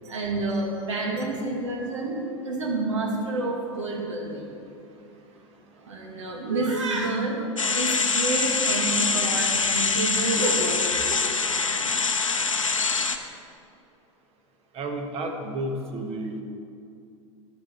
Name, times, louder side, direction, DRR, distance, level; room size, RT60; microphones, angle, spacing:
voice 1, 0.1-4.5 5.8-7.4 7.7-10.8 11.1-11.2, right 2 dB, 70° right, 0 dB, 2.1 m, -29 dB
sound 1, 7.6-13.2, left 4 dB, 90° left, 0.6 m, -24 dB
voice 2, 14.7-16.4, right 1 dB, 40° right, 4 dB, 1.5 m, -31 dB
10.5 x 10.0 x 4.4 m, 2.5 s
figure-of-eight pair, 85°, 16 cm